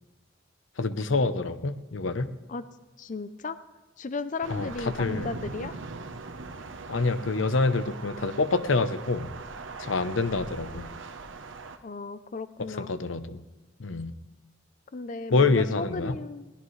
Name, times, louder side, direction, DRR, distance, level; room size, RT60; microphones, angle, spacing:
voice 1, 0.8-2.3 4.5-5.3 6.9-9.3 9.8-10.9 12.6-13.4 13.8-14.1 15.3-16.2, left 3 dB, 85° left, 12 dB, 0.8 m, -26 dB
voice 2, 3.0-3.6 4.0-5.8 11.8-12.9 14.9-16.5, left 4 dB, 40° left, 12 dB, 0.5 m, -35 dB
Thunder / Rain, 4.4-11.8, right 3 dB, 80° right, 0.9 m, -41 dB
22.0 x 16.5 x 3.2 m, 1.1 s
head